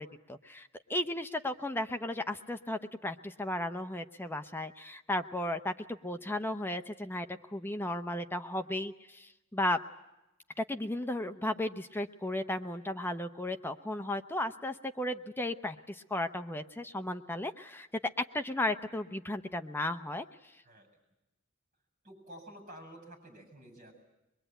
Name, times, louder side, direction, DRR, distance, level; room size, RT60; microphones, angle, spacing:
voice 1, 0.0-9.8 10.6-17.9 18.3-20.3, left 1 dB, 10° left, 7 dB, 0.8 m, -35 dB
voice 2, 22.0-23.9, right 1 dB, 35° right, 4 dB, 7.8 m, -50 dB
23.0 x 22.5 x 9.1 m, 0.95 s
head